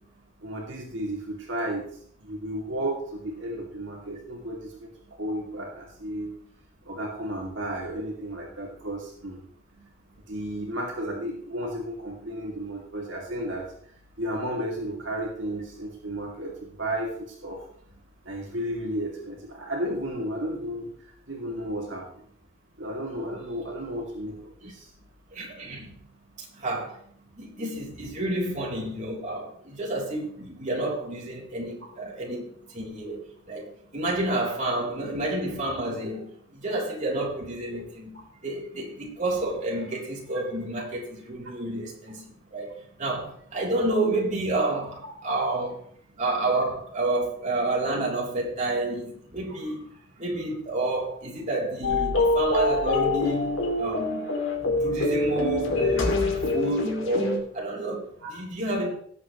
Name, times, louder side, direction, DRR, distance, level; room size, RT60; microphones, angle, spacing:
voice 1, 0.4-1.9 2.2-4.9 5.2-6.3 6.8-9.4 10.3-13.7 14.2-17.6 18.2-20.9 21.3-22.0 22.8-24.9 58.2-58.3, right 1 dB, 65° right, 2.7 m, -33 dB
voice 2, 25.3-25.9 26.5-27.0 27.4-45.8 46.2-49.9 50.2-54.3 54.8-56.2 56.5-58.9, right 2 dB, 40° right, 3.5 m, -30 dB
sound 1, 51.8-57.4, left 2 dB, 80° left, 2.8 m, -25 dB
19.0 x 7.9 x 3.2 m
head